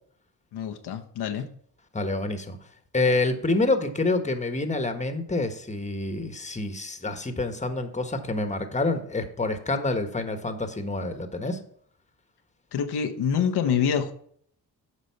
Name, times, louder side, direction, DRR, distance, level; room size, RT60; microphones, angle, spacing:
voice 1, 0.5-1.5 12.7-14.1, left 7 dB, 85° left, 6 dB, 0.9 m, -26 dB
voice 2, 1.9-2.6 2.9-11.6, left 2 dB, 20° left, 7 dB, 1.3 m, -27 dB
8.2 x 5.3 x 5.7 m, 0.62 s
cardioid pair, 70°, 38 cm